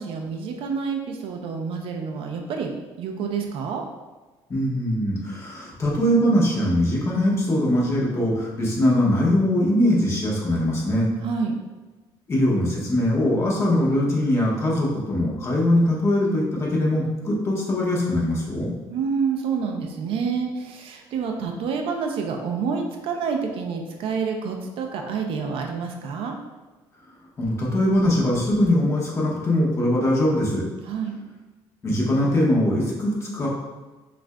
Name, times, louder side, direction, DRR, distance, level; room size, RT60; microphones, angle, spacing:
voice 1, 0.0-3.8 11.2-11.5 18.9-26.4 30.9-31.1, right 5 dB, 70° right, 3 dB, 0.5 m, -28 dB
voice 2, 4.5-11.1 12.3-18.7 27.4-30.6 31.8-33.5, left 1 dB, 30° left, -4 dB, 1.1 m, -21 dB
5.9 x 2.5 x 2.2 m, 1.2 s
cardioid pair, 130°, 10 cm